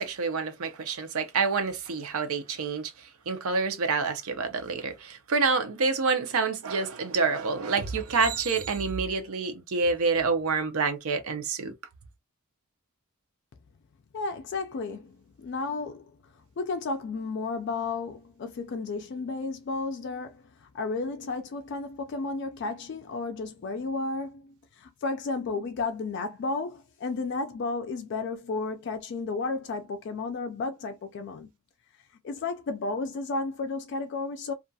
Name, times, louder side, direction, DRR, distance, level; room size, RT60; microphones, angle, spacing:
voice 1, 0.0-11.7, right 4 dB, 90° right, 0.6 m, -27 dB
voice 2, 14.1-16.1 16.6-31.5 32.2-34.5, left 3 dB, 55° left, 0.3 m, -33 dB
2.4 x 2.3 x 2.6 m
head